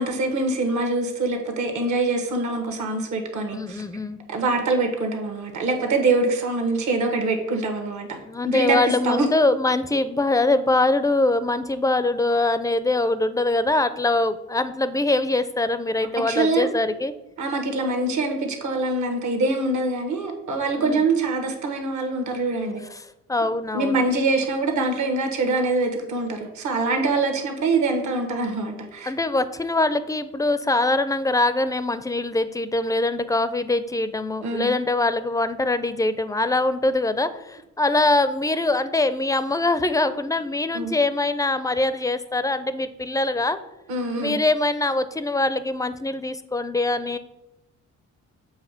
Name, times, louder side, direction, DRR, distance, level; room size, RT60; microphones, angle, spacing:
voice 1, 0.0-3.8 4.3-8.2 8.4-8.8 9.0-9.3 16.3-16.7 17.4-22.8 23.7-29.1 34.4-34.7 40.7-40.9 43.9-44.4, right 3 dB, 70° right, 4 dB, 1.3 m, -24 dB
voice 2, 3.5-4.2 8.3-17.1 20.8-21.0 22.9-24.0 29.0-43.6 44.2-47.2, left 2 dB, 10° left, 12 dB, 0.4 m, -23 dB
7.2 x 3.0 x 5.7 m, 0.93 s
cardioid pair, 90°, 30 cm